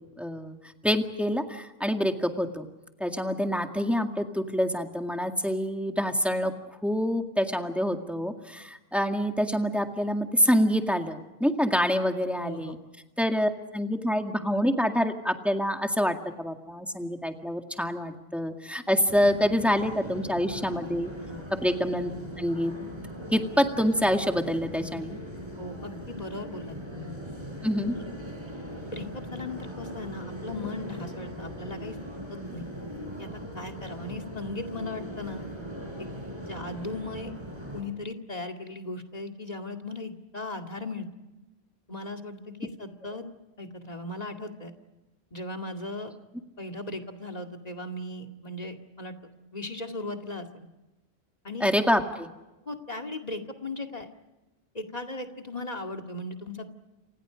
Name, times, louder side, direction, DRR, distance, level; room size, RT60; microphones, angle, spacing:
voice 1, 0.2-0.6 0.8-2.7 3.0-6.5 6.8-12.8 13.2-21.1 21.5-22.1 22.4-22.7 23.3-25.2 27.6-28.0 51.6-52.3, equal, ahead, 4 dB, 1.9 m, -26 dB
voice 2, 12.4-12.7 21.3-21.5 25.6-27.1 28.9-32.0 32.5-32.7 33.2-33.3 33.5-35.4 36.0-36.1 36.4-37.3 37.7-41.1 41.9-43.2 43.6-44.7 45.3-46.1 46.6-49.1 49.5-50.7 51.4-51.7 52.7-54.1 54.7-56.7, left 2 dB, 40° left, 4 dB, 2.3 m, -37 dB
sound 1, 19.1-37.8, equal, 25° right, 6.7 m, -40 dB
29.5 x 27.5 x 5.1 m, 1.0 s
omnidirectional pair, 1.1 m